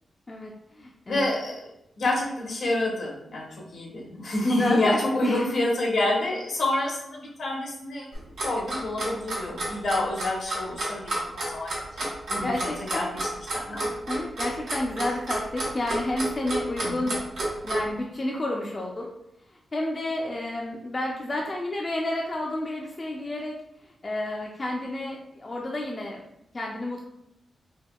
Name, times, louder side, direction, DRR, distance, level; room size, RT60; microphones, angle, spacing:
voice 1, 0.3-1.3 4.4-5.5 12.4-13.1 14.1-17.2 17.6-19.1 19.5-26.3 26.5-27.1, left 1 dB, 35° left, -1 dB, 0.4 m, -31 dB
voice 2, 1.1-1.5 2.0-8.0 8.4-13.3 13.7-13.9 16.8-17.1, left 1 dB, 75° left, -3 dB, 1.0 m, -28 dB
Clock, 8.1-17.8, right 1 dB, 90° right, 0.9 m, -29 dB
3.5 x 2.2 x 2.2 m, 0.81 s
cardioid pair, 65°, 0 cm